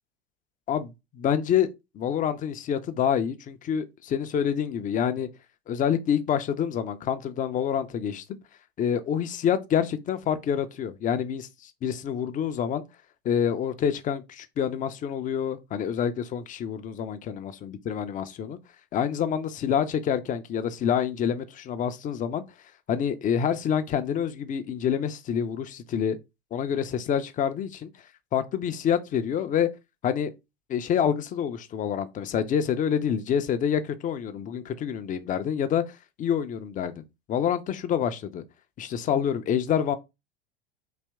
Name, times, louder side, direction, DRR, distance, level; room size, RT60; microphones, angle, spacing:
voice 1, 0.7-1.7 1.9-5.3 5.7-8.2 8.8-12.8 13.2-18.6 18.9-22.4 22.9-26.2 26.5-27.9 28.3-29.7 30.0-30.3 30.7-35.8 36.2-37.0 37.3-38.4 38.8-39.9, left 8 dB, 25° left, 0.5 m, -27 dB
4.2 x 2.9 x 3.4 m
figure-of-eight pair, 80°, 30 cm